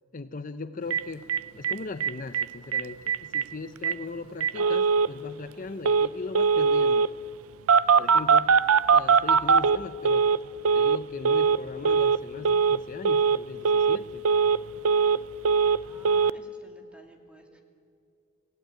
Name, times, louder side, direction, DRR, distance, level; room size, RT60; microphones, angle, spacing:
voice 1, 0.1-1.3 1.5-7.1 8.0-8.6 8.9-10.2 10.7-14.2, left 3 dB, 40° left, 10 dB, 0.6 m, -38 dB
Telephone, 0.9-1.0 1.3-1.4 1.6-1.7 2.0-2.4 2.7-2.8 3.1-3.4 3.8-3.9 4.4-5.1 5.8-6.1 6.3-7.1 7.7-10.4 10.6-11.0 11.2-11.6 11.8-12.2 12.4-12.8 13.0-13.4 13.6-14.0 14.2-15.2 15.4-16.3, right 5 dB, 80° right, 0.5 m, -21 dB
voice 2, 15.8-17.6, equal, 5° right, 3 dB, 2.3 m, -54 dB
25.0 x 16.0 x 9.2 m, 2.4 s
head